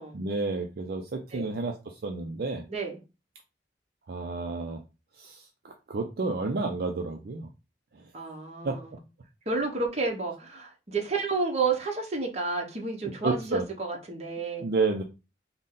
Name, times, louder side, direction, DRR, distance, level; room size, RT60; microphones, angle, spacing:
voice 1, 0.1-2.6 4.1-4.8 5.2-7.5 8.6-8.8 13.2-13.6 14.6-15.0, right 3 dB, 55° right, 0.5 m, -30 dB
voice 2, 8.1-9.0 9.5-14.7, right 4 dB, 40° right, 0.9 m, -31 dB
3.9 x 2.1 x 3.8 m
head